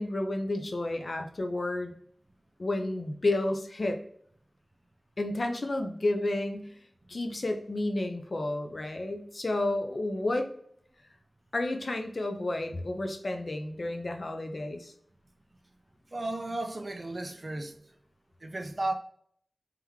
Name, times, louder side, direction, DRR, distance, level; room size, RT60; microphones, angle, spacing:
voice 1, 0.0-1.9 2.6-4.0 5.2-6.7 7.1-10.5 11.5-14.9, left 2 dB, 55° left, 0.6 m, -31 dB
voice 2, 16.1-17.8 18.4-18.9, right 2 dB, 35° right, 0.5 m, -34 dB
3.6 x 3.4 x 3.0 m
wide cardioid pair, 90°, 0 cm